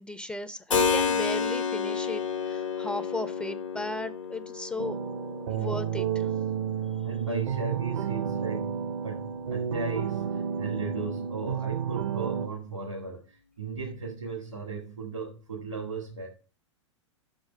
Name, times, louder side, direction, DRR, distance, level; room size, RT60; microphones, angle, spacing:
voice 1, 0.0-5.0 5.5-6.3, left 2 dB, 5° left, 0.4 m, -36 dB
Keyboard (musical), 0.7-9.3, left 6 dB, 85° left, 1.2 m, -32 dB
sound 1, 4.8-12.5, right 8 dB, 65° right, 0.6 m, -31 dB
voice 2, 7.0-16.3, right 4 dB, 85° right, 1.8 m, -36 dB
6.0 x 5.0 x 6.3 m
figure-of-eight pair, 95°, 16 cm